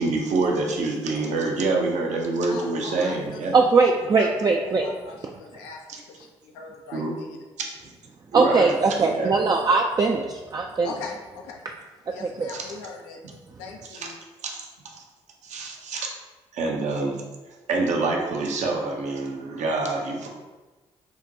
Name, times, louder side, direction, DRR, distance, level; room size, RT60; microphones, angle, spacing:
voice 1, 0.0-3.6 5.9-6.0 6.9-7.2 7.6-7.7 8.3-9.3 12.5-12.7 13.9-14.1 14.4-14.6 15.4-16.1 16.5-17.2 17.7-20.3, right 3 dB, 60° right, 0 dB, 0.7 m, -26 dB
voice 2, 2.5-4.3 4.6-7.4 9.2-9.3 10.8-11.6 12.1-13.2 13.6-14.1, left 4 dB, 80° left, 1 dB, 0.5 m, -40 dB
voice 3, 3.5-4.9 8.3-10.9 12.4-12.5, right 4 dB, 30° right, 1 dB, 0.3 m, -20 dB
5.5 x 2.2 x 2.6 m, 1.2 s
hypercardioid pair, 40°, 13 cm